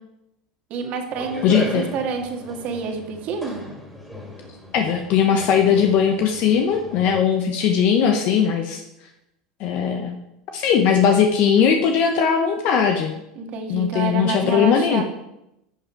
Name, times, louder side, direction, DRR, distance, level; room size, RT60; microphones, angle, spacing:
voice 1, 0.7-3.6 13.4-15.0, right 5 dB, 55° right, 3 dB, 1.8 m, -28 dB
sound 1, 1.1-7.2, equal, ahead, 2.7 m, -37 dB
voice 2, 1.4-1.9 4.7-8.8 9.6-10.2 10.5-13.1 13.7-15.0, left 7 dB, 55° left, 4 dB, 0.9 m, -19 dB
11.0 x 5.6 x 4.5 m, 0.87 s
hypercardioid pair, 95°, 3 cm